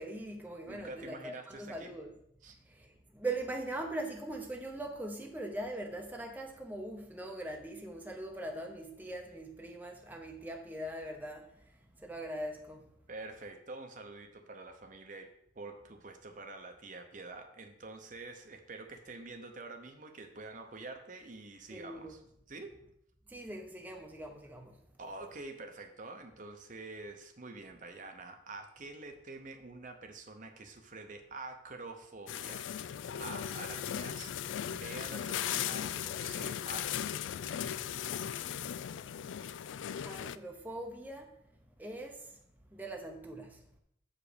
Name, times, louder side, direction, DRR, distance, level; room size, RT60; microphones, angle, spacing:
voice 1, 0.0-2.1 2.6-12.9 21.7-22.2 23.3-24.8 40.0-41.4 41.8-42.4 42.7-43.6, right 1 dB, 10° right, 0.7 m, -41 dB
voice 2, 0.7-1.9 2.4-2.6 13.1-15.3 15.5-22.2 22.5-22.7 25.0-32.7 33.2-34.3 34.7-37.4, right 3 dB, 45° right, 0.8 m, -47 dB
sound 1, 32.3-40.4, left 9 dB, 85° left, 0.3 m, -37 dB
7.3 x 5.0 x 5.0 m
head